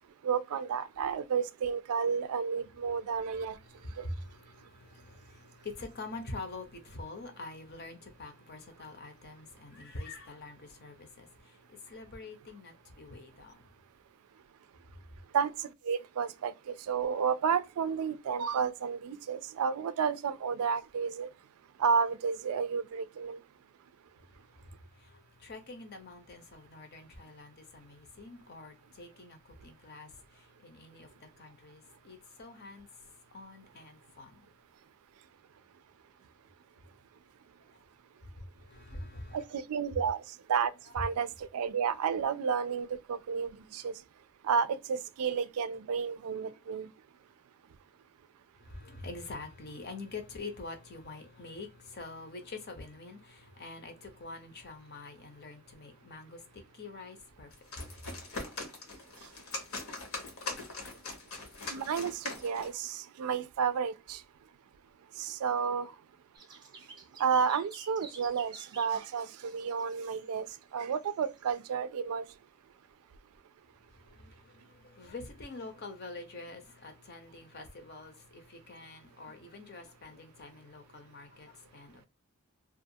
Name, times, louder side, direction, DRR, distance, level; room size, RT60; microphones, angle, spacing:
voice 1, 0.2-3.6 4.0-4.1 15.3-15.5 15.9-16.5 16.9-21.3 21.8-23.4 39.3-40.2 40.5-43.9 44.4-46.9 61.7-64.2 65.2-65.9 67.2-70.5 70.7-72.2, right 6 dB, 80° right, 0.3 m, -31 dB
voice 2, 3.6-13.7 24.3-34.5 37.7-37.8 38.3-39.4 48.6-58.2 73.9-82.1, left 3 dB, 45° left, 0.7 m, -46 dB
sound 1, 57.5-62.8, left 3 dB, 70° left, 1.0 m, -41 dB
sound 2, 66.3-70.3 70.8-71.6, right 3 dB, 20° right, 0.6 m, -52 dB
2.5 x 2.3 x 2.6 m
head